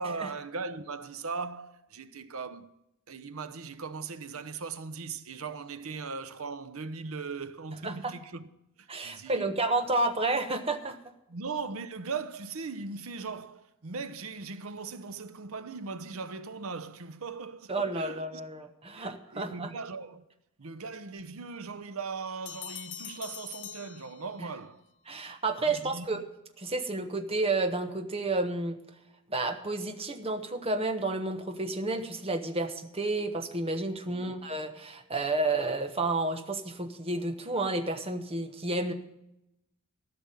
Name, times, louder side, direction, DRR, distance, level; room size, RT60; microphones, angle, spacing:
voice 1, 0.0-2.7 3.1-8.5 8.8-9.6 11.3-18.4 18.9-20.2 20.6-24.8 25.7-26.3 34.1-34.3, right 4 dB, 70° right, 0.8 m, -39 dB
voice 2, 8.9-11.0 17.7-19.7 24.4-24.5 25.1-26.2 26.6-28.8 29.3-38.9, right 2 dB, 25° right, 1.1 m, -31 dB
sound 1, 22.5-24.7, left 10 dB, 55° left, 0.9 m, -44 dB
14.0 x 6.1 x 9.1 m
head